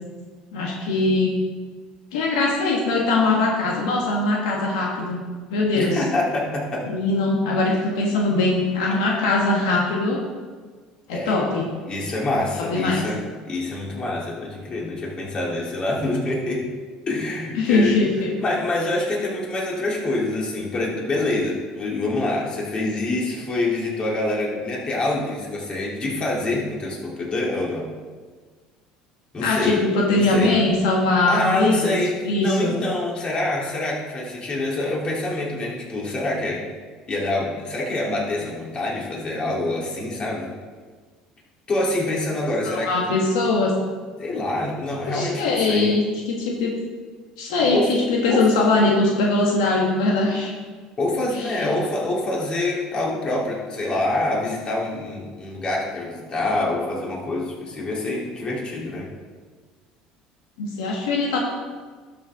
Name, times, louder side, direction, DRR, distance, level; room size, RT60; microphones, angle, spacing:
voice 1, 0.5-1.3 2.1-5.2 5.5-6.0 6.8-10.2 11.1-11.7 12.6-13.0 17.6-18.3 29.4-32.0 32.2-32.7 42.7-43.7 45.0-46.7 47.4-50.5 51.4-51.7 60.6-61.4, left 2 dB, 85° left, -2 dB, 1.5 m, -21 dB
voice 2, 5.7-6.9 11.1-11.6 11.9-16.7 17.1-18.0 18.4-27.9 29.3-29.8 30.1-30.5 31.3-32.1 32.4-36.7 37.1-40.5 41.7-43.2 44.2-45.9 47.7-48.0 48.3-48.5 51.0-59.1, left 2 dB, 35° left, -4 dB, 3.1 m, -26 dB
12.0 x 6.7 x 3.7 m, 1.5 s
supercardioid pair, 90°, 3 cm